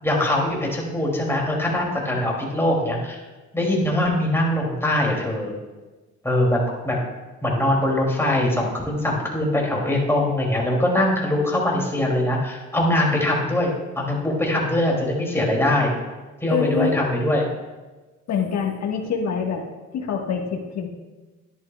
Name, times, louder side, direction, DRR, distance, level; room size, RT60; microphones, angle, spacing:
voice 1, 0.0-3.2 3.5-5.5 6.2-7.0 7.4-13.7 14.0-15.9 16.4-17.5, left 1 dB, 10° left, -2 dB, 2.8 m, -22 dB
voice 2, 16.5-16.9 18.3-19.6 19.9-20.9, left 6 dB, 60° left, 1 dB, 1.6 m, -25 dB
11.0 x 10.5 x 2.4 m, 1.2 s
cardioid pair, 90°, 30 cm